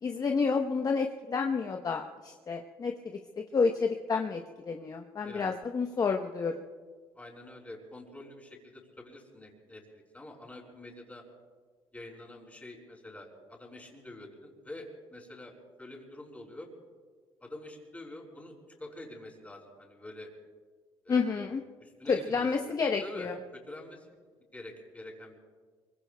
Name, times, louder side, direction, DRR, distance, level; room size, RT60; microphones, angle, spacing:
voice 1, 0.0-2.9 3.4-6.5 21.1-21.6 22.1-23.3, left 5 dB, 40° left, 3 dB, 1.0 m, -30 dB
voice 2, 5.2-5.5 7.1-11.2 11.9-15.5 15.8-16.7 17.4-20.3 21.0-21.5 21.8-22.7 23.0-24.2 24.5-25.3, left 1 dB, 15° left, 1 dB, 5.0 m, -47 dB
24.0 x 24.0 x 2.3 m, 1.6 s
supercardioid pair, 80°, 10 cm